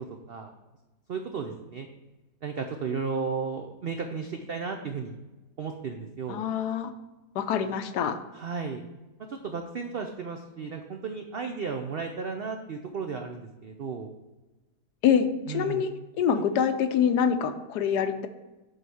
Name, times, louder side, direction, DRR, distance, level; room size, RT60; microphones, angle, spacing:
voice 1, 1.1-1.9 2.4-5.2 5.6-6.4 8.3-8.8 9.3-14.1 15.5-15.9 16.3-16.4, right 5 dB, 75° right, 4 dB, 0.5 m, -34 dB
voice 2, 6.3-6.9 7.3-8.2 15.0-18.3, left 7 dB, 80° left, 9 dB, 1.2 m, -25 dB
7.7 x 4.0 x 6.2 m, 1.1 s
omnidirectional pair, 1.7 m